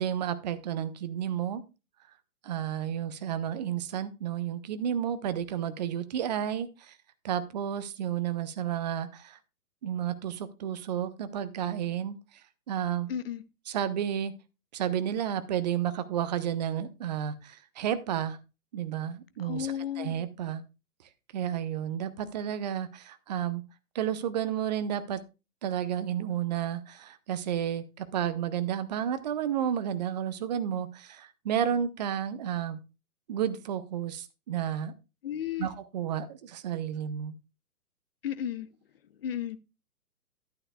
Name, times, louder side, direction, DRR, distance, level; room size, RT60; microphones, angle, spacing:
voice 1, 0.0-1.6 2.4-7.0 7.2-9.4 9.8-12.2 12.7-13.1 13.7-14.3 14.7-18.4 18.7-20.6 21.3-23.6 23.9-25.2 25.6-32.8 33.3-34.9 35.6-37.4, right 9 dB, 30° right, 0.7 m, -31 dB
voice 2, 13.1-13.4 19.4-20.2 35.2-35.7 38.2-38.7 39.2-39.6, left 9 dB, 40° left, 0.7 m, -33 dB
11.5 x 9.7 x 2.3 m
figure-of-eight pair, 125°, 46 cm